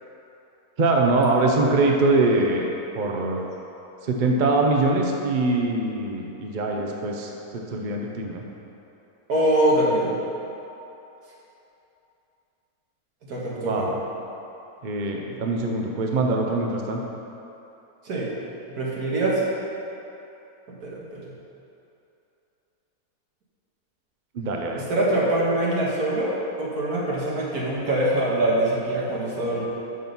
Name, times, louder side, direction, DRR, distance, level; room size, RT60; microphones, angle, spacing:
voice 1, 0.8-2.7 2.9-3.4 4.0-8.4 13.6-14.0 14.8-17.0 24.3-24.8, right 2 dB, 45° right, 1 dB, 0.6 m, -23 dB
voice 2, 9.3-10.2 13.2-13.9 18.0-18.3 18.7-19.4 20.7-21.2 24.8-29.7, right 1 dB, 75° right, -6 dB, 2.0 m, -24 dB
6.6 x 6.0 x 5.4 m, 3.0 s
omnidirectional pair, 1.7 m